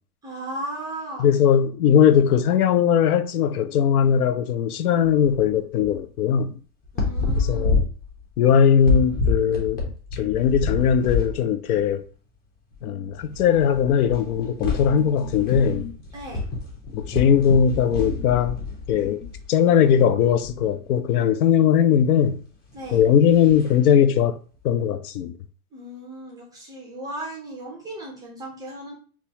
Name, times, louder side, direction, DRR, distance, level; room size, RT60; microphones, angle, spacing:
voice 1, 0.2-1.3 6.9-7.8 16.1-16.4 22.7-23.0 25.7-28.9, right 1 dB, 10° right, 0.4 m, -36 dB
voice 2, 1.2-6.6 7.3-7.8 8.4-9.9 10.2-12.0 12.8-16.0 16.9-18.6 18.9-22.4 22.9-24.4 24.6-25.4, left 8 dB, 80° left, 0.5 m, -19 dB
sound 1, 5.0-5.4 5.8-6.0 6.8-11.4 11.7-11.9 12.7-12.8 13.1-19.4 20.2-20.6 22.7-23.8, left 4 dB, 20° left, 0.7 m, -28 dB
4.1 x 2.3 x 2.8 m
supercardioid pair, 135°, 44 cm